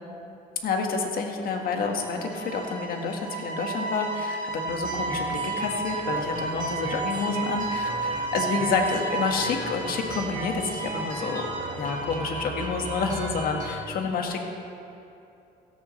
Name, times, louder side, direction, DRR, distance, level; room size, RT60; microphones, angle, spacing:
voice 1, 0.6-11.5 11.7-14.5, left 4 dB, 60° left, 2 dB, 1.6 m, -29 dB
sound 1, 1.5-12.3, right 3 dB, 80° right, 2.9 m, -33 dB
sound 2, 4.7-13.7, right 2 dB, 50° right, 2.3 m, -36 dB
16.5 x 14.0 x 3.3 m, 2.8 s
cardioid pair, 110°, 17 cm